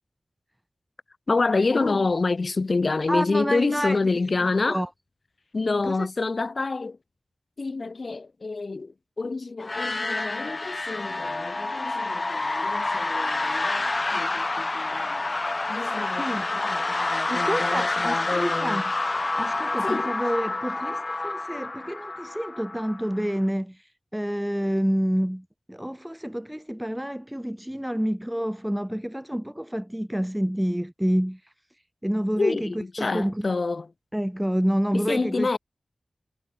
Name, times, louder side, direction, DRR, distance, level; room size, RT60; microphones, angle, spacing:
voice 1, 1.3-4.8 5.5-7.0 7.6-15.3 15.7-18.8 19.8-20.2 32.4-33.9 34.9-35.6, left 3 dB, 60° left, 2.0 m, -27 dB
voice 2, 3.1-4.0 4.7-4.9 5.8-6.1 16.2-16.4 17.3-18.8 19.4-23.8 24.1-31.4 32.0-33.5 34.1-35.6, equal, 5° right, 0.5 m, -28 dB
sound 1, 9.6-23.3, left 2 dB, 45° left, 0.7 m, -28 dB
cardioid pair, 45°, 0 cm